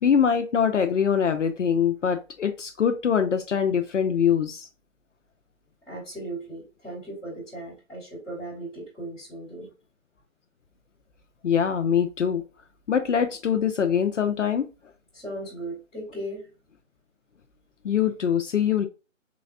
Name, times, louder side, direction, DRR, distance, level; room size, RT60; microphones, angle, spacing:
voice 1, 0.0-4.7 11.4-12.4 12.9-14.7 17.8-18.9, left 7 dB, 65° left, 0.5 m, -23 dB
voice 2, 5.9-9.7 15.1-16.5, right 1 dB, ahead, 1.4 m, -37 dB
3.9 x 3.3 x 2.3 m
figure-of-eight pair, 165°, 41 cm